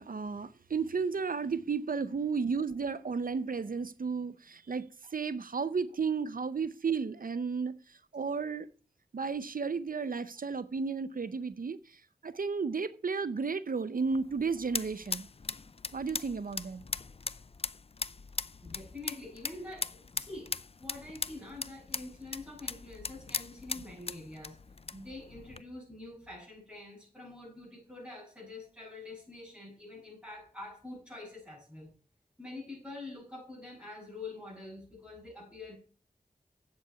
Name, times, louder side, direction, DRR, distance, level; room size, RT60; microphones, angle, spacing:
voice 1, 0.0-7.8 8.1-8.7 9.1-15.3 15.9-16.8, right 5 dB, 70° right, 0.6 m, -33 dB
sound 1, 14.0-25.6, left 4 dB, 40° left, 0.4 m, -40 dB
voice 2, 18.6-20.5 20.8-24.6 24.9-31.9 32.4-35.8, left 2 dB, 10° right, 6.4 m, -46 dB
8.3 x 7.7 x 5.6 m
wide cardioid pair, 50°, 15 cm